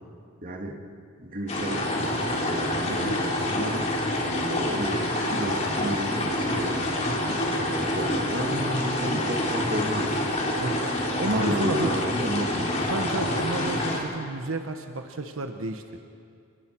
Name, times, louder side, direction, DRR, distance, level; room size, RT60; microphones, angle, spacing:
voice 1, 0.4-0.8 1.2-3.8 4.1-6.9 7.6-10.3 11.2-12.9, right 1 dB, 45° right, 2 dB, 2.0 m, -32 dB
sound 1, 1.5-14.0, left 1 dB, 35° left, 3.3 m, -27 dB
voice 2, 7.1-7.4 10.6-10.8 11.2-11.9 12.9-15.8, right 2 dB, 85° right, 6 dB, 1.1 m, -31 dB
29.0 x 21.0 x 4.6 m, 2.4 s
head